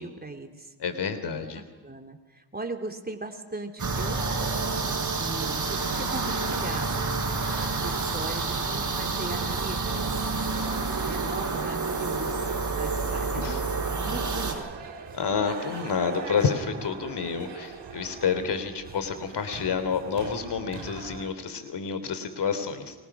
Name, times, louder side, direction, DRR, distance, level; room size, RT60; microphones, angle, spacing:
voice 1, 0.0-0.7 1.3-4.2 4.9-7.1 7.6-10.1 11.0-12.4 12.7-14.6, right 3 dB, 20° right, 4 dB, 3.7 m, -39 dB
voice 2, 0.8-1.6 13.4-13.6 15.1-22.9, left 6 dB, 70° left, 10 dB, 3.4 m, -29 dB
sound 1, 3.8-14.5, right 4 dB, 45° right, 6.1 m, -29 dB
sound 2, 7.3-21.3, right 6 dB, 75° right, 4.0 m, -42 dB
30.0 x 24.5 x 6.2 m, 1.2 s
cardioid pair, 65°, 42 cm